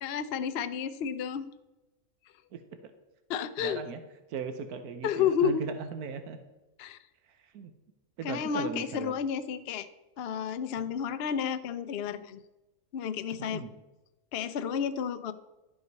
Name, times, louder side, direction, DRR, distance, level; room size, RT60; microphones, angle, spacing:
voice 1, 0.0-1.5 3.3-3.8 5.0-5.6 6.8-7.0 8.2-9.9 10.2-12.4 12.9-13.6 14.3-15.3, left 7 dB, 60° left, 11 dB, 0.6 m, -31 dB
voice 2, 2.5-2.9 3.6-4.0 4.3-6.4 7.3-7.7 8.2-9.2 10.8-10.9 13.4-13.7, right 5 dB, 90° right, 8 dB, 1.3 m, -38 dB
11.5 x 7.6 x 4.1 m, 1.1 s
omnidirectional pair, 1.6 m